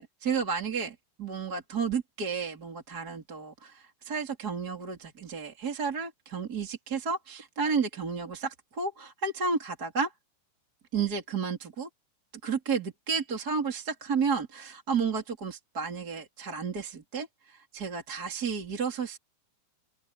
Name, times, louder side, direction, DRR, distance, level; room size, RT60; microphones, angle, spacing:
voice 1, 0.0-10.1 10.9-11.9 12.4-19.2, right 5 dB, 25° right, 3.1 m, -32 dB
open air
omnidirectional pair, 4.9 m